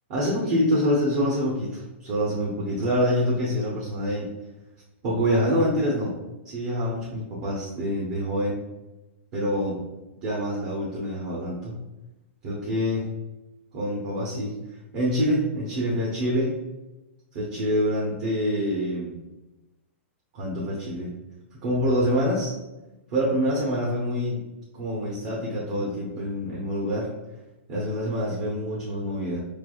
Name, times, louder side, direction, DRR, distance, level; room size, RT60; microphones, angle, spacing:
voice 1, 0.1-4.3 5.0-6.1 6.4-8.6 9.3-9.8 10.2-11.7 12.4-13.1 13.7-14.5 14.9-16.6 17.3-19.1 20.3-21.1 21.6-22.5 23.1-24.4 24.7-27.1 27.7-29.4, equal, 35° right, -5 dB, 0.8 m, -26 dB
4.0 x 3.3 x 2.3 m, 1.0 s
supercardioid pair, 165°, 7 cm